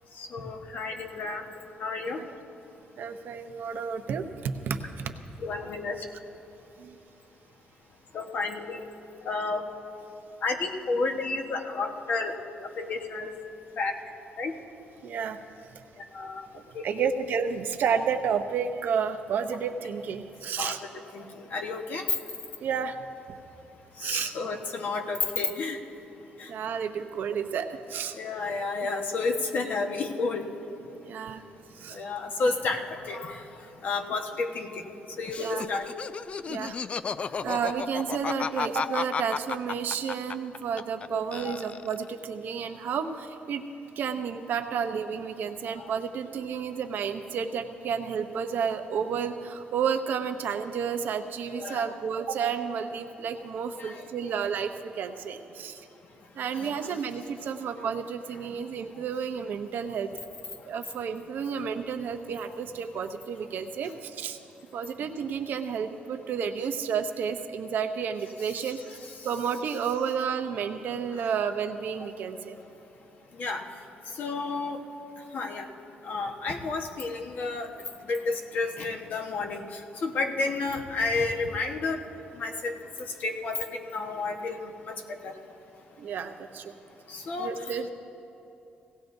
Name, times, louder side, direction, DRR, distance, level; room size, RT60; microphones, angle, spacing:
voice 1, 0.2-1.4 1.8-2.2 5.4-6.0 8.1-8.8 9.2-9.6 10.4-12.3 12.8-13.4 13.8-13.9 14.4-14.5 16.1-16.5 16.7-17.1 20.6-20.8 21.1-22.0 24.0-25.8 26.4-26.5 28.2-30.4 31.9-33.4 33.8-34.8 35.2-35.8 41.1-41.6 51.6-51.9 53.8-54.0 56.5-56.9 73.4-73.6 74.2-74.8 75.3-75.7 76.0-77.7 78.1-79.6 80.0-82.0 82.3-82.7 83.2-84.7 85.2-85.3 87.1-87.5, left 3 dB, 55° left, 4 dB, 1.2 m, -31 dB
voice 2, 3.0-5.1 6.8-7.0 15.0-15.4 16.5-20.8 22.6-23.0 24.0-24.3 26.5-28.2 31.0-31.4 31.7-32.0 35.4-35.7 36.5-36.8 37.4-43.6 44.0-55.9 56.3-60.1 60.6-64.4 64.7-69.0 69.2-72.6 86.0-86.7 87.4-87.9, right 7 dB, 65° right, 7 dB, 0.7 m, -31 dB
Laughter, 35.3-41.1 41.3-42.1, left 5 dB, 35° left, 0.3 m, -33 dB
18.0 x 16.0 x 2.6 m, 2.8 s
cardioid pair, 105°, 3 cm